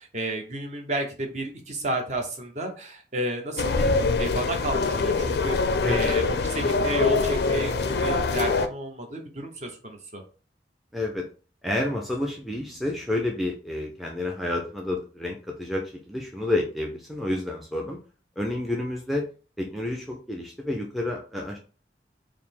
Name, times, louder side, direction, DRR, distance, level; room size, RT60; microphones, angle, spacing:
voice 1, 0.0-10.2, right 1 dB, 40° right, 3 dB, 0.8 m, -32 dB
sound 1, 3.6-8.7, left 3 dB, 70° left, 0.4 m, -24 dB
voice 2, 5.8-6.1 10.9-11.3 11.6-18.0 18.4-19.2 19.6-21.6, left 1 dB, ahead, -1 dB, 0.4 m, -29 dB
4.7 x 2.1 x 3.6 m, 0.37 s
head